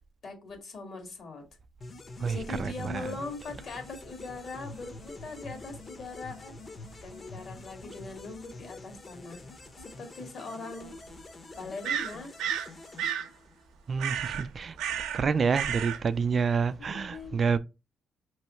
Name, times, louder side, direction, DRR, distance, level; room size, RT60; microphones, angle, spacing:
voice 1, 0.2-1.4 2.3-6.5 7.0-9.4 10.0-10.9 11.6-12.4 16.8-17.4, left 3 dB, 55° left, 1.8 m, -41 dB
sound 1, 1.8-13.9, left 3 dB, 40° left, 0.9 m, -47 dB
voice 2, 2.2-3.2 13.9-14.8 15.1-17.6, right 5 dB, 45° right, 0.3 m, -28 dB
sound 2, 9.8-9.9 11.8-12.7 13.0-13.3 14.0-14.5 14.8-15.2 15.5-16.0, right 9 dB, 90° right, 0.6 m, -31 dB
5.3 x 3.2 x 3.0 m
cardioid pair, 90°, 0 cm